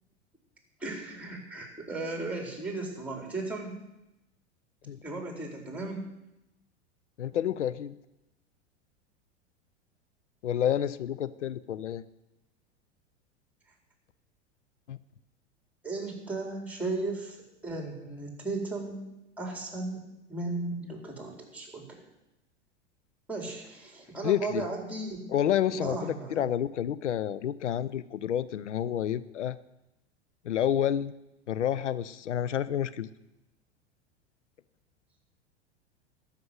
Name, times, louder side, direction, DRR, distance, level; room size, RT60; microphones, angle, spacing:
voice 1, 0.8-3.7 5.0-6.0 15.8-17.4 17.6-19.0 19.4-20.0 20.3-22.0 23.3-25.3 25.7-26.5, right 2 dB, 5° right, 1 dB, 4.4 m, -35 dB
voice 2, 7.2-8.0 10.4-12.0 14.9-15.0 24.2-24.6 25.3-29.6 30.4-31.1 31.5-33.1, left 10 dB, 85° left, 16 dB, 0.6 m, -29 dB
13.0 x 6.8 x 9.5 m, 0.92 s
hypercardioid pair, 90°, 34 cm